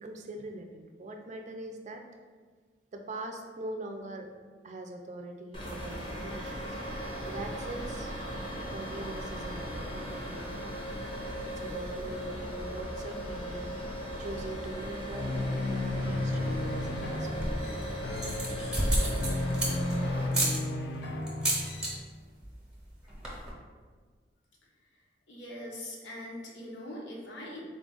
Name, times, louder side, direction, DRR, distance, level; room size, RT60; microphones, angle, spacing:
voice 1, 0.0-2.0 2.9-4.3 4.6-6.5 7.2-8.1 8.7-10.8 11.6-13.7 14.2-17.3 19.1-19.4, right 1 dB, 40° right, 4 dB, 0.4 m, -42 dB
sound 1, 5.5-20.3, equal, 30° left, 0.8 m, -38 dB
sound 2, 15.1-22.0, left 2 dB, 60° left, 0.4 m, -33 dB
sound 3, 17.2-17.7 18.1-19.9 20.3-20.6 21.3-21.9 22.2-22.5 22.8-22.9 23.1-23.5, right 1 dB, 5° right, 0.8 m, -30 dB
voice 2, 25.3-27.6, left 1 dB, 85° left, -4 dB, 1.0 m, -42 dB
4.0 x 2.4 x 3.7 m, 1.5 s
head